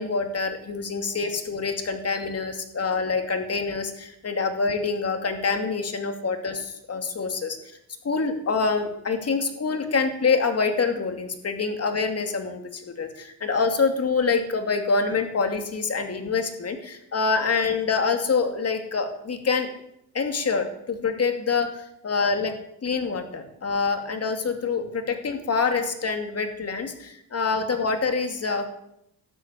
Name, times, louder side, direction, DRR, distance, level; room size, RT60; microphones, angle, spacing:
voice 1, 0.0-7.6 8.0-19.7 20.1-22.5 22.8-28.7, left 4 dB, 35° left, 6 dB, 2.6 m, -26 dB
13.5 x 10.5 x 8.3 m, 0.78 s
cardioid pair, 100°, 40 cm